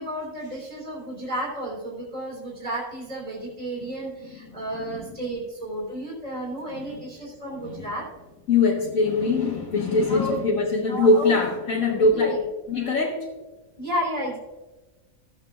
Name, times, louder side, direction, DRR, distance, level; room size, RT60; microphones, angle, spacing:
voice 1, 0.0-8.1 10.1-10.4 10.9-11.3 11.9-12.4 13.8-14.4, right 1 dB, 30° right, -4 dB, 3.2 m, -32 dB
voice 2, 4.2-4.6 4.9-5.2 6.7-7.0 7.6-7.9 8.5-12.3 12.7-13.3, left 3 dB, 80° left, -6 dB, 2.0 m, -22 dB
16.5 x 7.8 x 2.5 m, 1.2 s
omnidirectional pair, 1.4 m